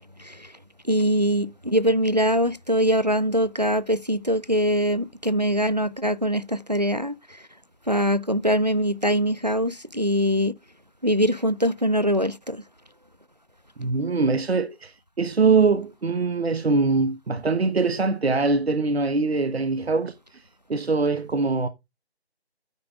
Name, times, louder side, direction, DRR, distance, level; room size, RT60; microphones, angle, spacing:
voice 1, 0.2-0.5 0.9-7.1 7.9-10.5 11.0-12.6, equal, 40° right, 0.4 m, -23 dB
voice 2, 13.8-20.4 20.7-21.7, right 4 dB, 70° right, 1.0 m, -23 dB
11.5 x 9.6 x 2.4 m
figure-of-eight pair, 180°, 33 cm